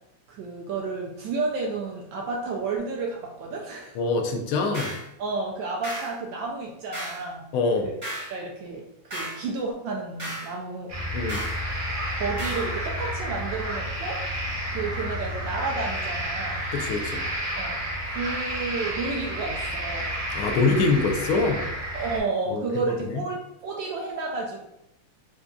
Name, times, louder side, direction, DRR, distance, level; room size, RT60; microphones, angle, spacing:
voice 1, 0.3-4.0 5.2-7.5 7.8-8.8 9.1-10.9 12.2-14.2 14.7-16.6 17.6-20.1 21.9-24.7, right 3 dB, 75° right, -1 dB, 1.1 m, -31 dB
voice 2, 3.9-4.9 7.5-7.9 11.1-11.4 16.7-17.2 20.3-21.7 22.5-23.2, left 3 dB, 85° left, 3 dB, 1.5 m, -24 dB
sound 1, 4.7-5.1 5.8-6.1 6.9-7.2 8.0-8.3 9.1-9.4 10.2-10.5 11.3-11.6 12.4-12.7, right 1 dB, 30° right, 1.0 m, -34 dB
sound 2, 10.9-22.2, equal, 50° right, 1.1 m, -31 dB
4.7 x 2.6 x 2.2 m, 0.82 s
omnidirectional pair, 2.3 m